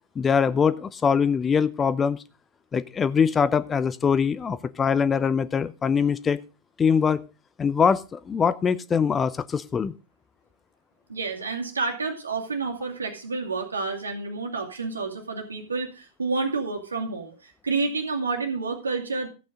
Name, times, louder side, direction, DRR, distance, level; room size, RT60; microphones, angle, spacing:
voice 1, 0.2-2.2 2.7-6.4 6.8-7.2 7.6-9.9, left 6 dB, 20° left, 17 dB, 0.6 m, -23 dB
voice 2, 11.1-19.3, right 4 dB, 75° right, 2 dB, 2.5 m, -29 dB
14.0 x 8.6 x 3.8 m, 0.31 s
figure-of-eight pair, 90°, 0 cm